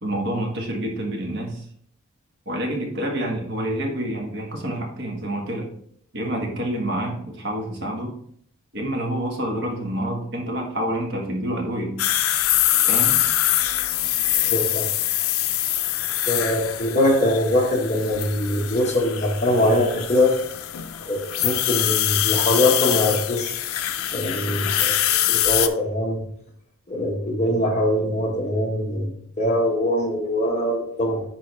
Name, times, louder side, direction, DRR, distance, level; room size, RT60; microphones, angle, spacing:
voice 1, 0.0-1.6 2.4-5.7 6.1-8.2 8.7-12.0 12.9-13.2, right 1 dB, 55° right, 0 dB, 1.6 m, -28 dB
sound 1, 12.0-25.7, left 12 dB, 85° left, 0.5 m, -24 dB
voice 2, 14.4-14.9 16.3-20.3 21.0-23.5 24.1-24.9 25.3-26.2 26.9-31.2, left 1 dB, 30° left, -1 dB, 1.5 m, -22 dB
10.0 x 3.8 x 3.4 m, 0.64 s
head